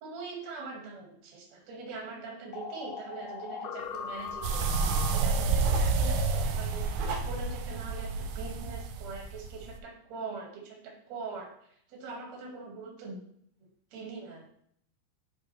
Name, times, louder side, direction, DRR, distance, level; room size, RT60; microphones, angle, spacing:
voice 1, 0.0-11.5 11.9-13.2 13.9-14.5, right 4 dB, 50° right, -1 dB, 2.3 m, -42 dB
sound 1, 2.5-6.4, left 6 dB, 85° left, 3.1 m, -39 dB
sound 2, 3.8-8.7, right 4 dB, 65° right, 2.7 m, -42 dB
sound 3, 4.4-9.8, right 4 dB, 85° right, 2.6 m, -29 dB
9.7 x 5.0 x 3.3 m, 0.66 s
omnidirectional pair, 5.5 m